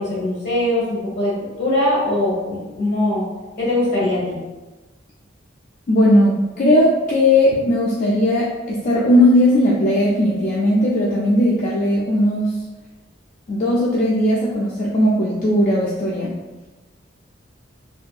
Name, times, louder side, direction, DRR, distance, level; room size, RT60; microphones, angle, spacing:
voice 1, 0.0-1.3 1.6-3.2 3.6-4.4, left 1 dB, 65° left, -6 dB, 1.0 m, -21 dB
voice 2, 5.9-12.5 13.5-16.3, left 1 dB, 40° left, -5 dB, 0.3 m, -17 dB
2.6 x 2.3 x 2.3 m, 1.2 s
head